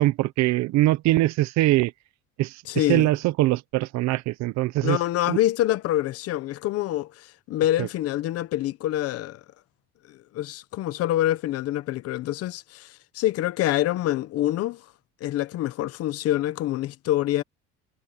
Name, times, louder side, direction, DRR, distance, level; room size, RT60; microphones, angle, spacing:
voice 1, 0.0-1.9 2.4-2.6 2.9-5.0 5.3-5.4 7.8-7.9, right 17 dB, 65° right, 1.1 m, -22 dB
voice 2, 2.7-3.1 4.8-9.4 10.1-14.8 15.2-17.4, left 14 dB, 55° left, 1.0 m, -26 dB
cardioid pair, 140°, 29 cm